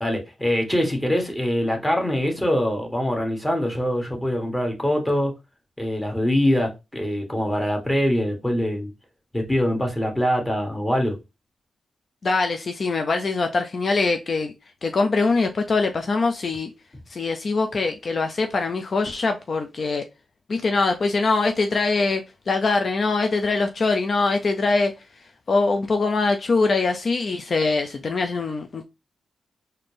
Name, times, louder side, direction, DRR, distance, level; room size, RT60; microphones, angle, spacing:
voice 1, 0.0-5.3 5.8-8.9 9.3-11.1, equal, 15° left, 1.5 m, -23 dB
voice 2, 12.2-14.5 14.8-16.7 17.1-20.0 20.5-24.9 25.5-28.8, left 3 dB, 55° left, 0.5 m, -23 dB
4.0 x 2.7 x 3.3 m
cardioid pair, 60°, 0 cm